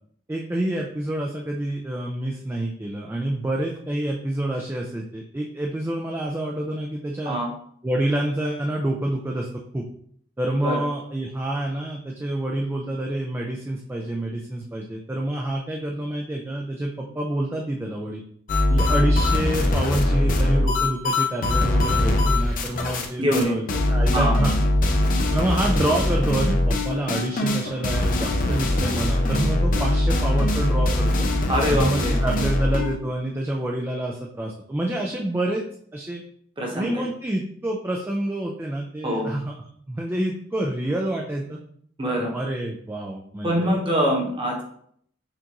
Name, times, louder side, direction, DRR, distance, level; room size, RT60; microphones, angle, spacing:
voice 1, 0.3-7.4 7.8-9.5 9.7-9.8 10.4-18.2 18.7-24.6 25.3-31.3 31.7-35.6 35.9-36.2 36.7-39.5 39.9-41.6 42.2-43.8, right 1 dB, 10° right, -1 dB, 0.3 m, -27 dB
sound 1, 18.5-23.1 23.3-23.4 23.7-33.0, left 1 dB, 45° left, 0.6 m, -22 dB
voice 2, 23.2-23.5 24.1-24.3 31.5-32.2 36.6-37.0 39.0-39.3 42.0-42.3 43.4-44.6, equal, 30° right, -1 dB, 1.0 m, -23 dB
5.9 x 2.5 x 2.9 m, 0.65 s
head